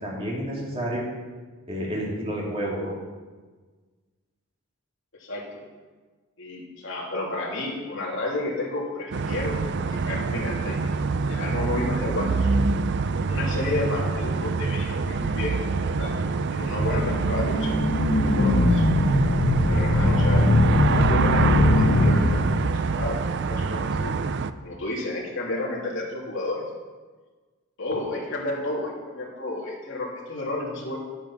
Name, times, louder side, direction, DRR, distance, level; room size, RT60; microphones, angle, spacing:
voice 1, 0.0-1.1 1.7-2.9, equal, 25° right, -4 dB, 3.1 m, -30 dB
voice 2, 6.4-9.6 9.9-10.9 11.3-12.3 13.2-18.8 19.7-20.5 20.9-22.4 22.9-24.1 24.6-26.6 27.8-31.0, left 2 dB, 60° left, -2 dB, 2.8 m, -31 dB
sound 1, 9.1-24.5, right 4 dB, 50° right, 0.4 m, -26 dB
sound 2, 16.5-22.8, left 1 dB, 75° left, 1.1 m, -21 dB
11.0 x 8.8 x 6.0 m, 1.4 s
head